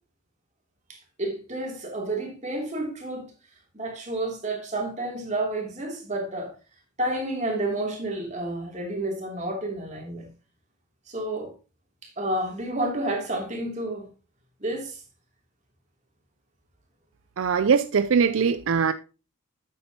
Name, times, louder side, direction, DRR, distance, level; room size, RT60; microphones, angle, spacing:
voice 1, 0.9-3.3 3.7-6.5 7.0-10.3 11.1-11.5 12.0-14.1 14.6-15.0, right 1 dB, 35° right, 2.8 m, -30 dB
voice 2, 17.4-18.9, right 6 dB, 75° right, 0.4 m, -21 dB
8.7 x 8.6 x 2.9 m
head